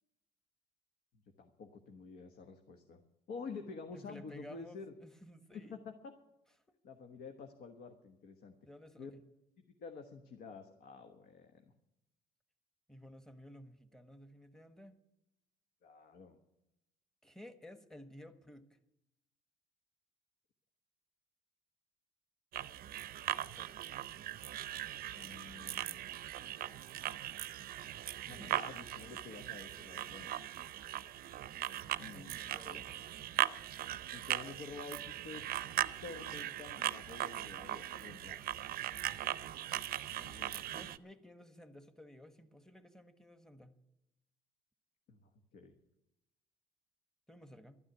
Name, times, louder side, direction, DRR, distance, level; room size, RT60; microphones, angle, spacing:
voice 1, 1.4-3.0 3.3-4.9 5.5-6.1 6.8-8.5 9.0-9.1 9.8-11.6 15.8-16.4 25.1-26.0 28.3-30.3 32.0-32.3 32.6-32.8 34.1-35.4 36.0-38.4 40.1-40.7 45.1-45.7, left 4 dB, 65° left, 5 dB, 1.4 m, -49 dB
voice 2, 3.9-5.8 8.6-9.1 12.9-15.0 17.2-18.8 23.5-23.8 28.2-28.7 32.1-33.0 40.7-43.8 47.3-47.8, left 1 dB, 5° left, 9 dB, 1.2 m, -55 dB
sound 1, 22.5-41.0, right 13 dB, 60° right, 0.6 m, -39 dB
12.5 x 9.9 x 9.6 m, 0.89 s
cardioid pair, 110°, 17 cm